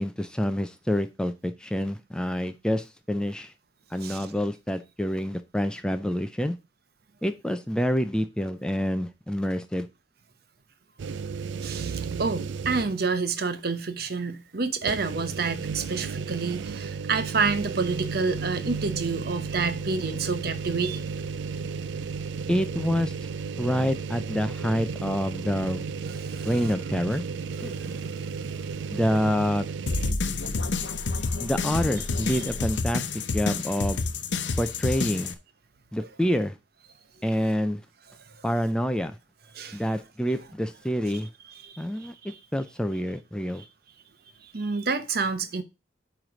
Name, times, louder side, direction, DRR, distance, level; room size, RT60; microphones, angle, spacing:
voice 1, 0.0-3.5 3.9-6.5 7.2-9.9 22.5-23.1 23.6-25.8 26.4-27.2 27.6-28.0 28.9-29.7 31.4-34.1 34.6-35.4 35.9-36.5 37.2-37.8 38.4-39.1 39.7-41.3 41.8-42.1 42.5-43.6, equal, 5° left, 0.4 m, -27 dB
sound 1, 11.0-13.2 13.6-13.7 14.8-30.1, right 5 dB, 80° right, 0.4 m, -33 dB
voice 2, 11.6-21.0 26.1-26.5 27.7-28.7 32.3-32.4 39.5-39.8 41.6-42.4 44.5-45.6, right 4 dB, 55° right, 0.9 m, -29 dB
sound 2, 29.9-35.3, left 3 dB, 75° left, 0.8 m, -29 dB
8.9 x 3.2 x 6.1 m
head